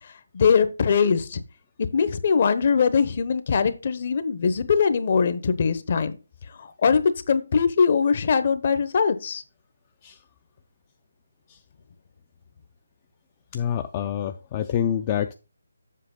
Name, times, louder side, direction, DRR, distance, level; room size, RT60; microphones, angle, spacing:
voice 1, 0.3-1.4 1.9-6.2 6.6-9.4, left 6 dB, 45° left, 0.9 m, -21 dB
voice 2, 13.5-15.3, left 9 dB, 25° left, 0.4 m, -27 dB
7.5 x 6.1 x 3.8 m
figure-of-eight pair, 160°, 0 cm